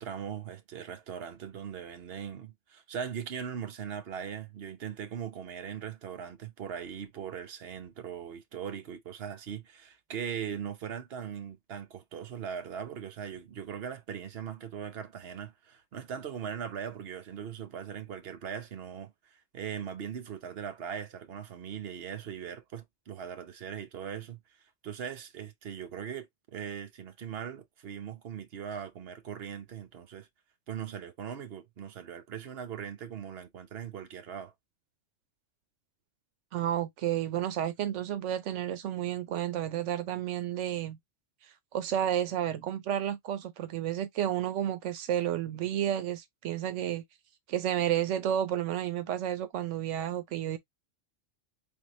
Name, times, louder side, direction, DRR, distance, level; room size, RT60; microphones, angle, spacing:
voice 1, 0.0-30.3 30.7-34.5, right 8 dB, 60° right, 1.1 m, -40 dB
voice 2, 36.5-41.0 41.7-47.0 47.5-50.6, right 11 dB, 85° right, 1.0 m, -31 dB
3.6 x 3.6 x 2.9 m
omnidirectional pair, 1.2 m